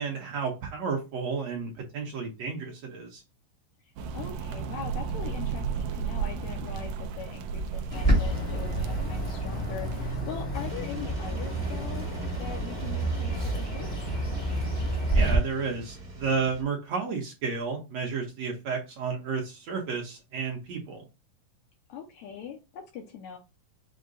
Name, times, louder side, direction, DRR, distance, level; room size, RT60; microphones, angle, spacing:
voice 1, 0.0-3.2 15.1-21.0, right 5 dB, 65° right, 0 dB, 1.9 m, -32 dB
voice 2, 3.8-12.1 12.4-13.9 21.9-23.4, left 8 dB, 80° left, 3 dB, 1.8 m, -41 dB
sound 1, 4.0-10.2, right 6 dB, 80° right, 1.6 m, -34 dB
Bird, 7.9-15.4, right 1 dB, 20° left, 0.6 m, -29 dB
sound 2, 10.5-16.6, right 1 dB, 40° right, 1.1 m, -43 dB
6.4 x 2.2 x 3.8 m, 0.27 s
omnidirectional pair, 3.8 m